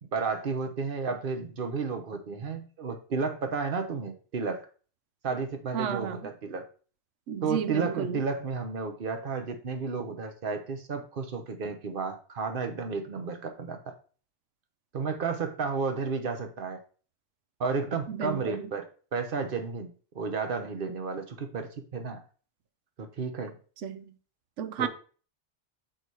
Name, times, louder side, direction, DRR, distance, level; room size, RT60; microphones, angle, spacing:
voice 1, 0.0-4.7 5.2-6.7 7.4-13.9 14.9-16.8 17.6-22.2 23.0-23.6 24.8-24.9, right 4 dB, 50° right, 1.1 m, -32 dB
voice 2, 5.7-6.2 7.3-8.2 18.1-18.7 23.8-24.1 24.6-24.9, right 7 dB, 85° right, 1.0 m, -32 dB
6.1 x 4.1 x 4.8 m
omnidirectional pair, 1.2 m